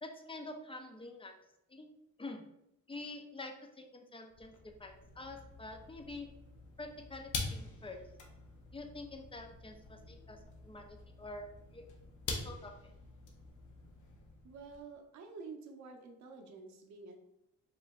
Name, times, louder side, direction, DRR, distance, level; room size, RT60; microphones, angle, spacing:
voice 1, 0.0-1.3 1.7-1.9 2.2-2.4 2.9-4.5 4.8-6.3 6.8-8.0 8.7-10.4 10.6-11.8 12.3-12.9, left 2 dB, 20° left, 4 dB, 0.5 m, -47 dB
sound 1, 4.3-14.8, left 3 dB, 75° left, 0.8 m, -46 dB
voice 2, 14.4-17.2, right 4 dB, 70° right, 3 dB, 0.8 m, -49 dB
4.9 x 3.3 x 2.4 m, 0.81 s
cardioid pair, 90°, 30 cm